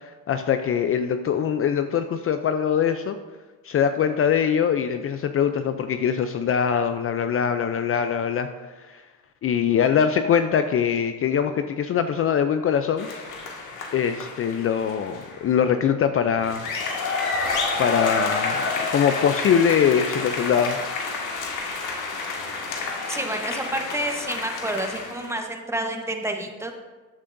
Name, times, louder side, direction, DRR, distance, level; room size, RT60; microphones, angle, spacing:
voice 1, 0.0-3.2 3.6-8.5 8.9-9.0 9.4-13.1 13.9-16.7 17.8-20.8, left 8 dB, 40° left, 8 dB, 0.5 m, -22 dB
sound 1, 13.0-15.4 16.4-25.3, left 3 dB, 60° left, 1.9 m, -29 dB
voice 2, 23.1-26.7, right 1 dB, 10° right, 3 dB, 1.1 m, -29 dB
13.5 x 8.3 x 2.6 m, 1.3 s
cardioid pair, 110°, 35 cm